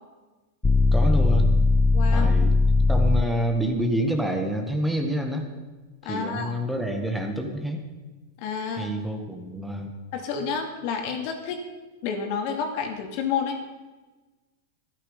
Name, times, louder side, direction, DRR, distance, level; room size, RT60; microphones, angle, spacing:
sound 1, 0.6-3.4, left 3 dB, 15° left, 0.4 m, -19 dB
voice 1, 0.9-1.6 2.1-2.6 2.9-5.5 6.0-7.9 8.8-9.9, right 1 dB, 5° right, 3 dB, 1.6 m, -27 dB
voice 2, 1.9-2.3 6.0-6.5 8.4-8.9 10.1-11.6 12.0-13.6, left 6 dB, 55° left, 4 dB, 2.4 m, -29 dB
12.5 x 11.5 x 5.6 m, 1.2 s
hypercardioid pair, 120°, 0 cm